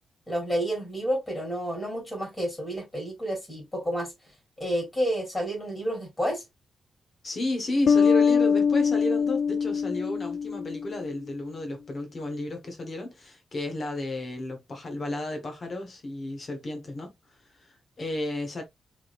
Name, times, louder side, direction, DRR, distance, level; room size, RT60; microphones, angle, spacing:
voice 1, 0.3-4.1 4.6-6.4, equal, 15° left, 3.0 m, -30 dB
voice 2, 7.2-17.1 17.5-18.6, left 1 dB, 35° left, 1.2 m, -32 dB
sound 1, 7.9-11.2, left 6 dB, 60° left, 0.3 m, -23 dB
4.7 x 3.7 x 2.5 m
wide cardioid pair, 155°, 0 cm